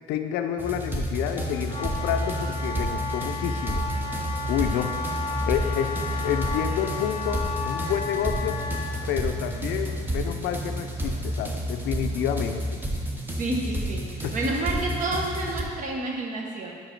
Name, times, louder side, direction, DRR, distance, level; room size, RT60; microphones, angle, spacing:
voice 1, 0.1-3.8 4.5-4.9 5.5-8.6 9.1-12.8 14.2-14.3, left 9 dB, 85° left, 6 dB, 0.5 m, -29 dB
sound 1, 0.6-15.6, equal, 10° right, 0.7 m, -30 dB
Wind instrument woodwind instrument, 1.4-8.9, left 4 dB, 30° left, 0.6 m, -33 dB
sound 2, 3.7-12.7, right 6 dB, 75° right, 0.5 m, -45 dB
voice 2, 13.3-16.7, right 2 dB, 50° right, -1 dB, 1.1 m, -29 dB
5.5 x 5.0 x 4.5 m, 2.1 s
cardioid pair, 110°, 17 cm